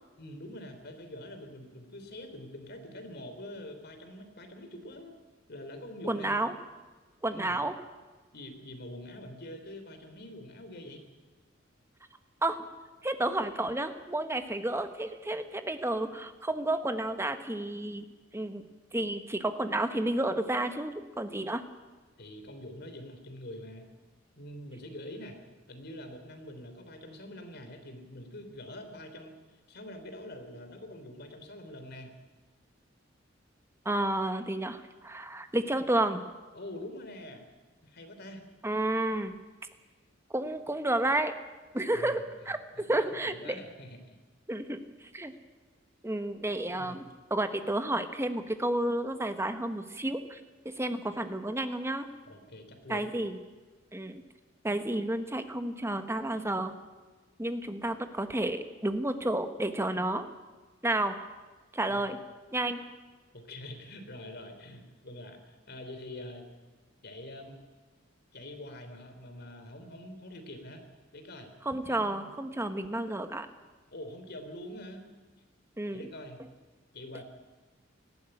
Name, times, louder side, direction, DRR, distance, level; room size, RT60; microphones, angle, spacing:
voice 1, 0.2-5.2 5.5-6.3 7.3-7.6 8.3-11.1 22.2-23.9 24.4-25.4 25.7-29.3 29.7-32.1 36.5-37.4 37.8-38.4 41.9-42.3 42.7-44.0 46.7-47.1 52.3-53.1 61.9-62.1 63.3-66.4 67.0-67.6 68.3-70.8 71.1-71.5 71.9-72.3 73.9-75.0 75.9-76.4 76.9-77.2, left 1 dB, 55° left, 6 dB, 3.3 m, -45 dB
voice 2, 6.0-6.5 7.2-7.7 12.4-12.6 13.0-18.0 18.3-18.6 18.9-21.6 33.8-36.2 38.6-39.3 40.3-41.3 41.7-43.6 44.5-44.8 45.1-45.3 46.0-47.0 47.3-50.4 50.6-52.1 52.9-53.4 53.9-54.2 54.6-56.7 57.4-60.3 60.8-61.2 61.7-62.2 62.5-62.8 71.6-73.5 75.8-76.1, right 1 dB, 15° right, 8 dB, 1.2 m, -31 dB
19.0 x 14.5 x 9.9 m, 1.3 s
head